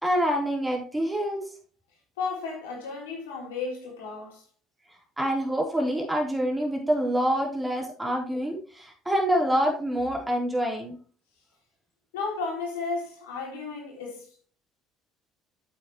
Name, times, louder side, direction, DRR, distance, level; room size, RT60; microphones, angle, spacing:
voice 1, 0.0-1.4 5.2-11.0, equal, 10° right, 3.8 m, -26 dB
voice 2, 2.2-4.4 12.1-14.5, left 4 dB, 90° left, 3.8 m, -34 dB
8.5 x 8.4 x 3.1 m
hypercardioid pair, 75°, 0 cm